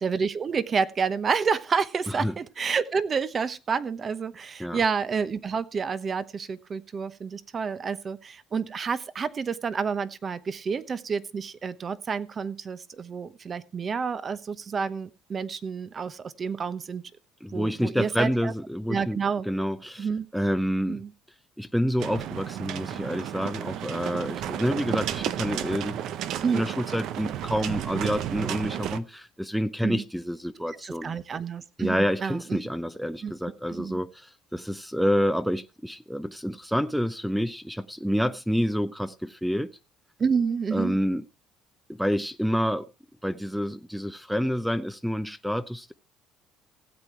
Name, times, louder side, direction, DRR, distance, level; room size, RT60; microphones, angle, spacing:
voice 1, 0.0-17.0 17.5-18.5 18.9-19.5 20.0-20.3 20.9-21.1 26.4-26.7 29.8-30.0 30.7-32.6 33.2-33.3 33.7-34.0 40.2-41.0, right 5 dB, 35° right, 1.0 m, -29 dB
voice 2, 17.4-20.1 20.3-21.0 21.6-26.1 26.5-31.1 31.8-39.7 40.7-41.2 41.9-42.9 43.2-45.9, equal, ahead, 0.7 m, -28 dB
sound 1, 22.0-29.0, right 11 dB, 65° right, 0.8 m, -32 dB
16.5 x 8.4 x 4.7 m
cardioid pair, 105°, 0 cm